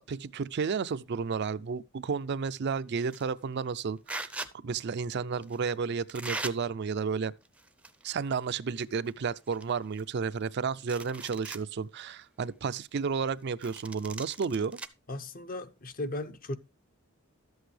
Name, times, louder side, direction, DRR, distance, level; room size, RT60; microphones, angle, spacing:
voice 1, 0.0-7.3 8.0-14.8, right 5 dB, 55° right, 0.4 m, -32 dB
sound 1, 3.0-3.3 4.1-4.5 5.4-5.6 6.1-6.5 7.5-8.1 8.4-8.5 9.1-9.2 9.5-10.5 10.8-11.6 12.1-12.2 13.6-14.9, right 2 dB, 5° right, 0.5 m, -39 dB
voice 2, 15.1-16.6, left 1 dB, 45° left, 0.8 m, -36 dB
12.5 x 8.0 x 3.3 m
head